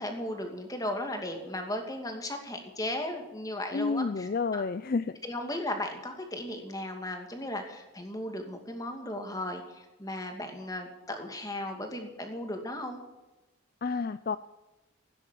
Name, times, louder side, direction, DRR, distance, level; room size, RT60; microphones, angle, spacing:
voice 1, 0.0-4.6 5.2-13.0, left 1 dB, 20° left, 4 dB, 2.4 m, -36 dB
voice 2, 3.7-5.2 13.8-14.4, left 4 dB, 45° left, 14 dB, 0.4 m, -30 dB
16.5 x 10.5 x 7.6 m, 1.1 s
head